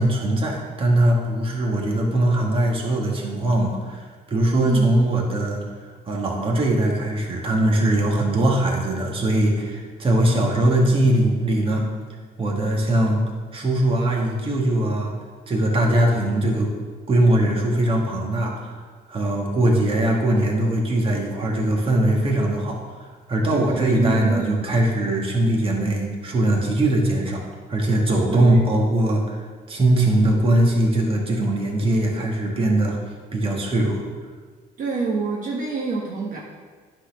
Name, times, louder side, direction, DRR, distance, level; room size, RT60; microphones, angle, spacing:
voice 1, 0.0-5.6 6.1-11.9 12.4-13.2 13.5-15.1 15.5-16.7 17.1-18.8 19.1-23.0 23.3-29.4 29.7-33.0 33.3-34.0, right 1 dB, 35° right, -1 dB, 1.8 m, -21 dB
voice 2, 4.5-4.9 23.5-24.8 28.3-28.6 34.8-36.4, right 4 dB, 50° right, -3 dB, 1.4 m, -27 dB
9.7 x 4.3 x 6.0 m, 1.5 s
cardioid pair, 110°, 17 cm